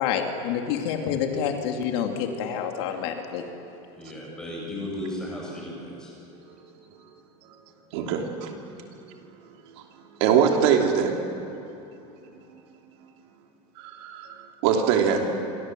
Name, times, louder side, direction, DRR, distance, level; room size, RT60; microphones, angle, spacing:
voice 1, 0.0-3.4, left 8 dB, 60° left, 3 dB, 2.7 m, -28 dB
voice 2, 3.9-6.1 14.9-15.2, left 1 dB, 5° left, -3 dB, 7.8 m, -35 dB
voice 3, 7.9-8.5 10.2-11.2 13.8-15.2, right 7 dB, 55° right, 2 dB, 3.1 m, -22 dB
27.5 x 25.5 x 7.8 m, 2.9 s
supercardioid pair, 180°, 16 cm